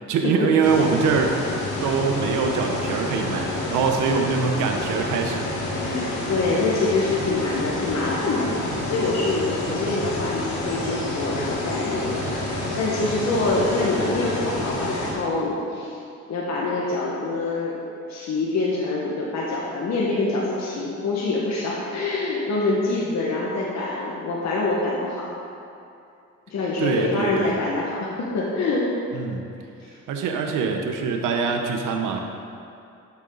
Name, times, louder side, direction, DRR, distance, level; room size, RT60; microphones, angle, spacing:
voice 1, 0.1-1.4 1.8-5.5 26.8-27.6 29.1-29.4 30.1-32.2, right 5 dB, 90° right, 3 dB, 1.1 m, -23 dB
sound 1, 0.6-15.1, left 1 dB, 85° left, 2.5 m, -29 dB
voice 2, 5.8-16.0 16.3-17.8 18.1-25.2 26.5-28.9, left 3 dB, 60° left, -5 dB, 1.7 m, -25 dB
12.5 x 7.4 x 4.0 m, 2.6 s
cardioid pair, 90°, 30 cm